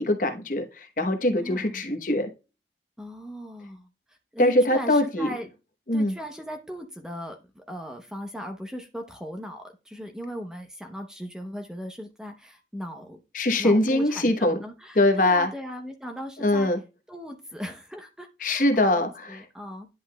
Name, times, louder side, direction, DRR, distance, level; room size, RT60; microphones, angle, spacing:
voice 1, 0.0-2.3 4.4-5.3 5.9-6.2 13.3-14.6 15.0-15.5 16.4-16.8 18.4-19.4, left 1 dB, 50° left, 1.0 m, -22 dB
voice 2, 1.4-1.8 3.0-5.5 5.9-13.2 13.6-16.7 17.1-19.9, equal, 5° right, 0.7 m, -38 dB
10.5 x 5.5 x 2.2 m
head